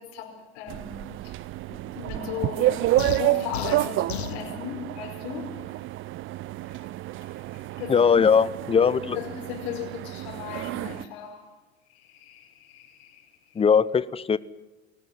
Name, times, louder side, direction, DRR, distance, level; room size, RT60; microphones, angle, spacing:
voice 1, 0.0-1.4 1.7-5.6 6.7-6.8 7.2-8.3 9.1-11.5 11.9-13.2, left 8 dB, 65° left, 5.2 m, -37 dB
sound 1, 0.7-11.0, right 15 dB, 40° right, 0.6 m, -29 dB
sound 2, 3.0-4.4, left 11 dB, 90° left, 1.0 m, -34 dB
voice 2, 7.9-9.2 13.6-14.4, left 6 dB, 20° left, 0.8 m, -20 dB
21.5 x 18.5 x 7.9 m
hypercardioid pair, 90°, 31 cm